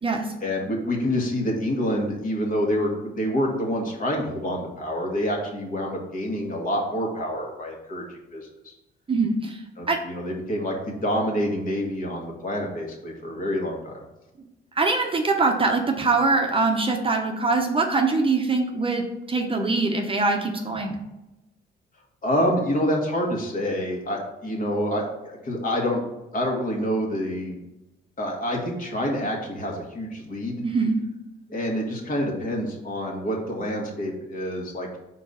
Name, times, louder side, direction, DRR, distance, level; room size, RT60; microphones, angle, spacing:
voice 1, 0.4-8.7 9.8-14.0 22.2-26.0 26.3-27.6 28.2-30.6 31.5-35.0, equal, 45° left, 0 dB, 1.7 m, -27 dB
voice 2, 9.1-9.6 9.9-10.0 14.8-21.0 30.6-31.0, right 3 dB, 25° right, 3 dB, 0.8 m, -23 dB
4.4 x 4.0 x 5.6 m, 0.98 s
cardioid pair, 90°, 20 cm